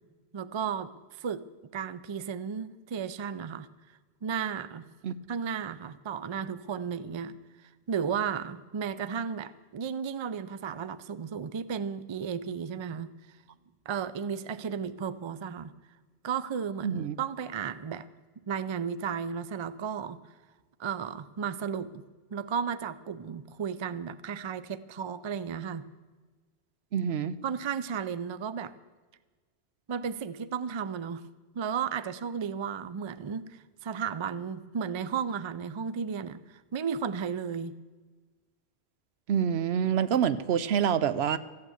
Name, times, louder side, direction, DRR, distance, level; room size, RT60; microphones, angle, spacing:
voice 1, 0.3-1.4 1.7-3.7 4.2-4.9 5.3-7.4 7.9-13.1 13.9-15.7 16.2-18.1 18.5-20.2 20.8-22.0 22.3-25.8 27.4-28.7 29.9-31.3 31.5-37.8, right 7 dB, 45° right, 15 dB, 0.3 m, -34 dB
voice 2, 16.8-17.2 26.9-27.4 39.3-41.4, right 8 dB, 75° right, 14 dB, 0.9 m, -26 dB
14.5 x 8.7 x 8.1 m, 1.3 s
omnidirectional pair, 1.1 m